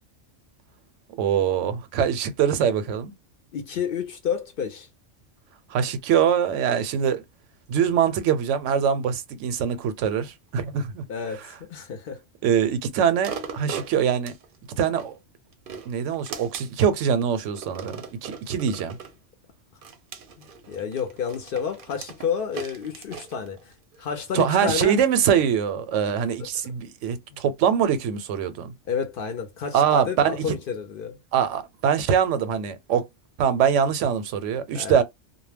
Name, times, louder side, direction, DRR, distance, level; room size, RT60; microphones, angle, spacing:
voice 1, 1.2-3.1 5.7-7.2 7.7-11.0 11.4-11.5 12.4-14.3 14.8-15.1 15.9-19.0 24.3-28.7 29.7-30.6 31.3-33.0 33.4-35.0, right 8 dB, 90° right, 0.9 m, -23 dB
voice 2, 3.5-4.9 11.1-11.4 11.7-12.2 20.4-23.7 24.0-25.0 26.4-26.5 27.3-27.4 28.9-31.2 34.7-35.0, left 7 dB, 60° left, 0.6 m, -30 dB
sound 1, 13.2-15.1 15.5-17.0 17.6-19.2 19.8-24.0 24.5-24.6, right 6 dB, 60° right, 0.6 m, -39 dB
2.2 x 2.1 x 3.2 m
omnidirectional pair, 1.2 m